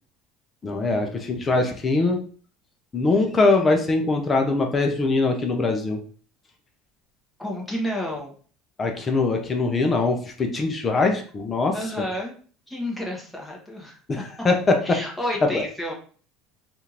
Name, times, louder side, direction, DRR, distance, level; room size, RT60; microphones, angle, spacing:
voice 1, 0.6-2.2 2.9-6.0 8.8-11.8 14.1-15.0 15.5-15.6, left 3 dB, 20° left, 4 dB, 0.5 m, -22 dB
voice 2, 7.4-8.4 11.7-12.3 12.7-14.3 14.8-15.9, left 1 dB, 5° left, -2 dB, 1.0 m, -30 dB
3.5 x 2.5 x 2.8 m, 0.42 s
cardioid pair, 135°, 0 cm